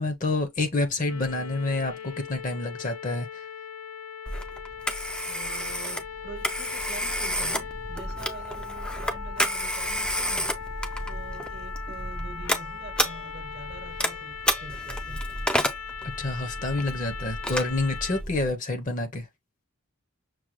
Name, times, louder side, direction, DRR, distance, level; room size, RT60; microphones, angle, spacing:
voice 1, 0.0-3.5 16.0-19.3, left 2 dB, 35° left, 0.7 m, -28 dB
sound 1, 1.1-18.2, left 7 dB, 85° left, 0.6 m, -39 dB
Telephone, 4.3-18.5, equal, 5° left, 0.3 m, -31 dB
voice 2, 5.3-10.5 11.1-15.2, right 4 dB, 50° right, 0.8 m, -45 dB
6.1 x 2.2 x 3.1 m
head